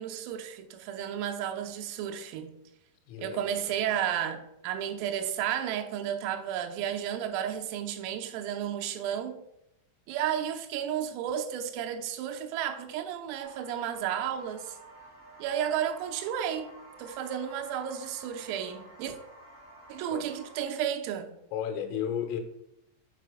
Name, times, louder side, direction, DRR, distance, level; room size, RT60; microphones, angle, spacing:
voice 1, 0.0-2.6 3.2-9.4 10.1-14.8 15.4-16.7 17.0-19.2 19.9-21.3, right 9 dB, 90° right, 3.5 m, -32 dB
voice 2, 3.1-3.6 20.1-20.3 21.5-22.4, left 9 dB, 90° left, 3.3 m, -33 dB
sound 1, 13.4-20.6, right 2 dB, 65° right, 0.4 m, -51 dB
7.8 x 5.0 x 4.7 m
omnidirectional pair, 5.8 m